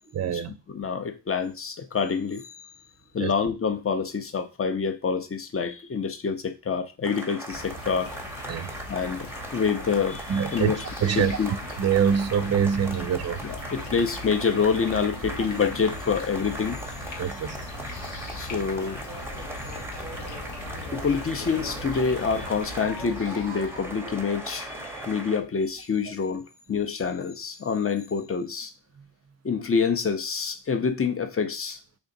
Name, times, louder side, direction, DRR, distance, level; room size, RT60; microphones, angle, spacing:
voice 1, 0.1-0.6 3.2-3.3 8.5-8.8 10.3-10.7 11.0-11.4 11.8-13.4 17.2-17.7, right 7 dB, 40° right, 0.4 m, -24 dB
voice 2, 0.7-2.7 3.1-8.1 8.9-11.5 13.4-16.8 17.1-17.4 18.4-19.0 20.9-26.4 26.7-28.7 29.4-32.0, left 5 dB, 30° left, 0.6 m, -27 dB
sound 1, 7.0-25.4, right 1 dB, 5° right, 0.7 m, -39 dB
sound 2, 7.5-25.7, left 1 dB, 85° left, 0.9 m, -40 dB
3.4 x 2.5 x 3.8 m
cardioid pair, 55°, 45 cm